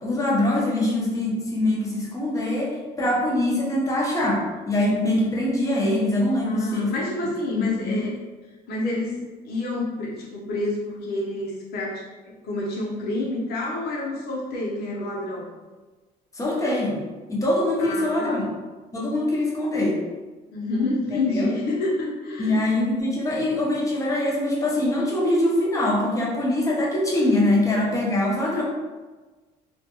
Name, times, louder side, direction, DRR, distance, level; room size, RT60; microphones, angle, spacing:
voice 1, 0.0-6.9 7.5-8.0 16.3-17.0 17.3-18.4 18.9-20.0 21.4-21.5 22.4-28.6, left 1 dB, 20° left, -4 dB, 0.7 m, -23 dB
voice 2, 6.4-8.1 8.7-12.0 12.4-15.5 17.8-18.5 20.5-22.6, left 2 dB, 70° left, -4 dB, 0.8 m, -28 dB
2.5 x 2.2 x 2.8 m, 1.3 s
cardioid pair, 110°, 17 cm